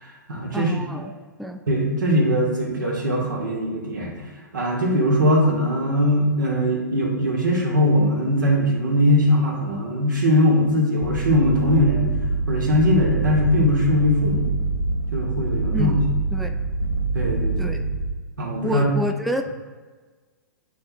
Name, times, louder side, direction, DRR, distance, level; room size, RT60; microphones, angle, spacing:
voice 1, 0.0-1.0 1.7-4.2 4.5-12.1 12.5-14.5 15.1-16.0 17.1-17.8 18.4-18.8, equal, 90° right, -2 dB, 1.8 m, -21 dB
voice 2, 0.5-1.1 1.4-1.6 15.7-16.0 16.3-16.6 17.6-17.8 18.6-19.5, left 1 dB, ahead, 4 dB, 0.3 m, -28 dB
sound 1, 11.0-18.1, right 3 dB, 80° left, 1.3 m, -25 dB
9.4 x 4.2 x 2.4 m, 1.4 s
hypercardioid pair, 125°, 10 cm